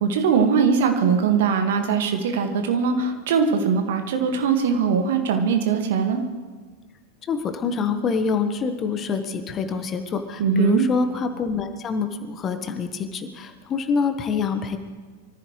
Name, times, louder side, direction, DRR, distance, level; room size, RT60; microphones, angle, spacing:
voice 1, 0.0-6.2 10.4-10.8, right 6 dB, 55° right, 4 dB, 1.9 m, -21 dB
voice 2, 7.3-14.8, left 5 dB, 25° left, 8 dB, 1.3 m, -26 dB
24.5 x 14.5 x 3.2 m, 1.4 s
figure-of-eight pair, 90°, 0 cm